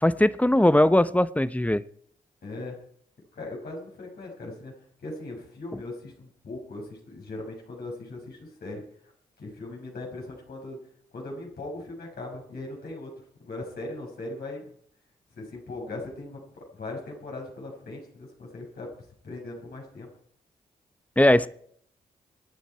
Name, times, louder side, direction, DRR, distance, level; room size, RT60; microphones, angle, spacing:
voice 1, 0.0-1.8 21.2-21.5, left 1 dB, 10° left, 1.0 m, -20 dB
voice 2, 2.4-2.8 3.3-4.7 5.0-8.8 9.4-10.8 11.1-13.1 13.4-14.7 15.3-18.9 19.2-20.1, left 2 dB, 70° left, 6.5 m, -39 dB
26.5 x 9.2 x 4.7 m
supercardioid pair, 40°, 17 cm